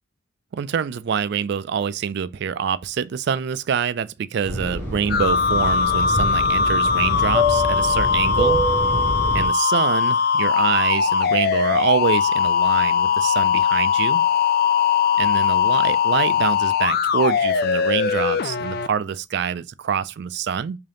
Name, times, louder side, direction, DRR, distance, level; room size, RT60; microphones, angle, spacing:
voice 1, 0.5-8.6 9.3-14.2 15.2-20.8, right 7 dB, 55° right, 0.3 m, -25 dB
Fixed-wing aircraft airplane, 4.4-9.5, left 1 dB, 10° left, 1.3 m, -25 dB
sound 1, 5.1-18.9, left 6 dB, 50° left, 0.3 m, -20 dB
3.4 x 2.7 x 3.7 m
head